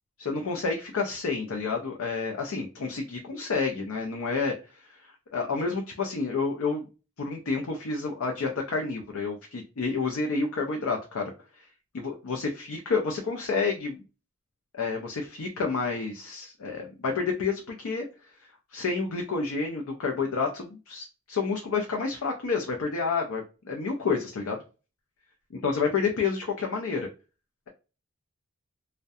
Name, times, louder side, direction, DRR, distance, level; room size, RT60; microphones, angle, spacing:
voice 1, 0.2-6.9 7.2-11.3 11.6-11.7 11.9-14.0 14.7-18.1 18.7-24.6 25.5-27.1, left 4 dB, 85° left, 2 dB, 0.5 m, -29 dB
2.6 x 2.1 x 2.3 m, 0.32 s
head